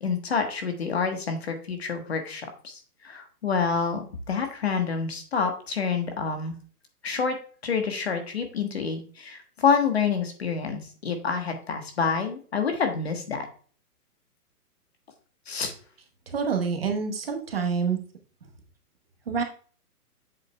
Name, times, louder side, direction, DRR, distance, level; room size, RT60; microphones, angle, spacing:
voice 1, 0.0-6.5 7.0-7.4 7.6-13.5 15.5-15.7, left 5 dB, 40° left, 5 dB, 1.3 m, -28 dB
voice 2, 16.3-18.0 19.3-19.4, right 5 dB, 40° right, 3 dB, 1.1 m, -27 dB
7.6 x 6.3 x 2.2 m, 0.42 s
hypercardioid pair, 180°, 46 cm